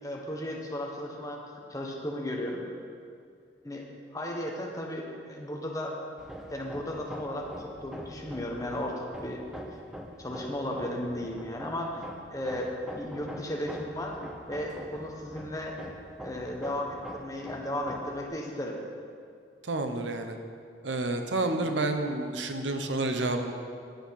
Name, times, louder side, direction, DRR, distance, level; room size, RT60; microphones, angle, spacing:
voice 1, 0.0-1.4 1.7-2.6 3.6-3.8 4.1-6.0 6.5-9.4 10.2-12.0 12.3-14.2 14.5-15.7 16.2-18.8, left 1 dB, 20° left, 0 dB, 1.2 m, -35 dB
Hammer, 6.2-18.3, equal, 5° right, 0.7 m, -44 dB
voice 2, 19.6-20.4 20.8-23.5, right 2 dB, 85° right, 6 dB, 0.9 m, -29 dB
10.0 x 8.2 x 5.8 m, 2.3 s
head